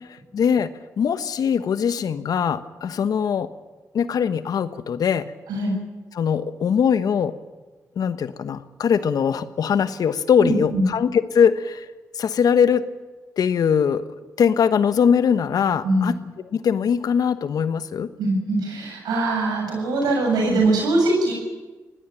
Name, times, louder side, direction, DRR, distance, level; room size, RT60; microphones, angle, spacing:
voice 1, 0.3-0.7 1.0-3.5 3.9-5.3 6.1-7.3 8.0-11.9 12.1-12.8 13.4-14.1 14.4-16.1 16.5-18.1, left 7 dB, 70° left, 12 dB, 1.2 m, -21 dB
voice 2, 10.4-10.9 15.8-16.2 18.2-21.3, right 2 dB, 85° right, 1 dB, 6.9 m, -22 dB
23.0 x 17.5 x 9.1 m, 1.3 s
supercardioid pair, 45°, 7 cm